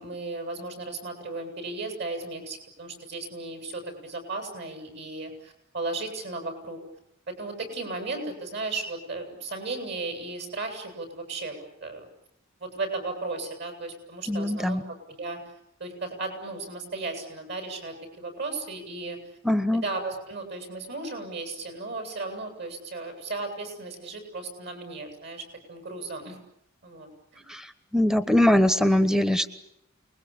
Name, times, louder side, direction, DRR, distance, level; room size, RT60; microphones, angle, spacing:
voice 1, 0.0-6.8 7.3-12.1 12.6-15.4 15.8-19.2 19.7-26.4 26.8-27.4, right 3 dB, 55° right, 5 dB, 7.9 m, -35 dB
voice 2, 14.3-14.8 19.4-19.8 27.5-27.7 27.9-29.5, left 1 dB, 5° right, 12 dB, 1.1 m, -22 dB
29.5 x 21.5 x 8.8 m, 0.80 s
head